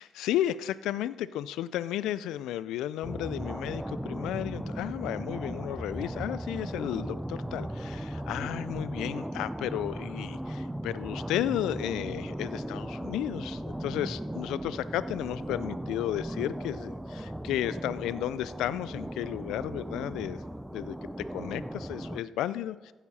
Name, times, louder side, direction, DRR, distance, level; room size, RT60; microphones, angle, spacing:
voice 1, 0.0-20.4 20.7-22.9, left 12 dB, 90° left, 17 dB, 0.3 m, -33 dB
sound 1, 3.0-22.2, right 1 dB, 5° right, 0.4 m, -37 dB
15.5 x 7.0 x 4.2 m, 1.3 s
cardioid pair, 90°, 0 cm